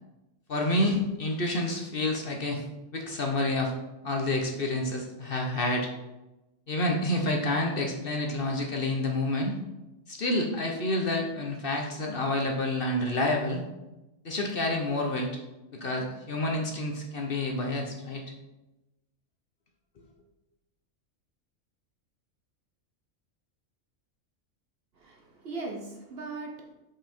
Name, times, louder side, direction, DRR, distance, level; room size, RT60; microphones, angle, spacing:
voice 1, 0.5-2.7 2.9-3.7 4.0-5.9 6.7-9.5 10.1-13.6 14.2-15.3 15.7-18.2, left 1 dB, 50° left, 1 dB, 1.0 m, -28 dB
voice 2, 25.0-26.7, right 3 dB, 50° right, 1 dB, 1.1 m, -39 dB
5.7 x 5.2 x 4.3 m, 0.99 s
omnidirectional pair, 1.4 m